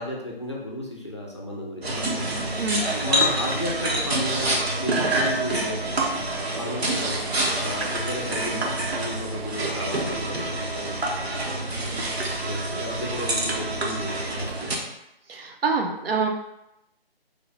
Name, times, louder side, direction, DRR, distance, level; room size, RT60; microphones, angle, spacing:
voice 1, 0.0-2.4 3.0-7.2 7.6-11.3 11.8-12.1 12.4-14.1 14.4-14.9, left 1 dB, 30° left, -3 dB, 0.4 m, -34 dB
sound 1, 1.8-14.8, right 1 dB, 90° right, 0.9 m, -27 dB
voice 2, 15.3-16.3, right 4 dB, 70° right, 3 dB, 0.7 m, -25 dB
3.2 x 2.2 x 3.8 m, 0.85 s
figure-of-eight pair, 160°, 30 cm